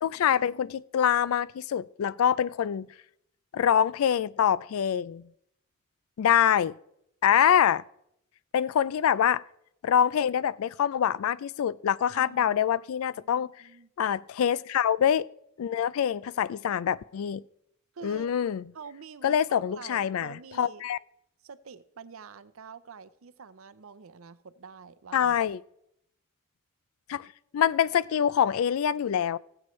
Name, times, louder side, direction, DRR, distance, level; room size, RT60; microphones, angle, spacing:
voice 1, 0.0-2.9 3.5-5.2 6.2-6.8 7.2-7.8 8.5-9.4 9.8-13.5 14.0-15.3 15.6-17.4 18.0-18.6 19.2-21.0 25.1-25.6 27.1-27.3 27.5-29.4, left 9 dB, 80° left, 0.3 m, -25 dB
voice 2, 12.1-12.7 13.1-13.9 17.9-18.4 18.7-20.8 21.4-25.4, right 5 dB, 80° right, 0.6 m, -47 dB
18.5 x 7.9 x 3.1 m
head